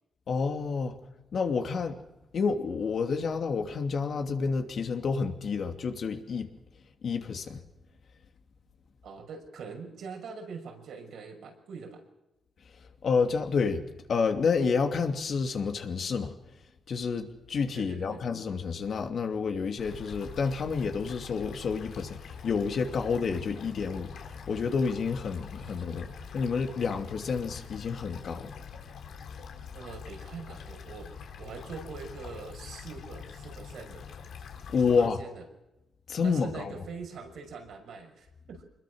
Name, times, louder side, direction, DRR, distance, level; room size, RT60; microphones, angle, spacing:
voice 1, 0.3-1.0 1.3-2.0 2.3-6.5 7.0-7.6 12.8-16.3 16.9-28.6 34.7-35.2 36.1-36.7, left 5 dB, 55° left, 2.7 m, -29 dB
voice 2, 9.0-12.0 17.7-18.2 25.6-25.7 29.7-34.1 35.0-35.4 36.2-38.6, right 5 dB, 75° right, 6.0 m, -43 dB
sound 1, 19.8-35.1, left 6 dB, 80° left, 3.8 m, -44 dB
25.5 x 21.5 x 6.3 m
cardioid pair, 110°, 0 cm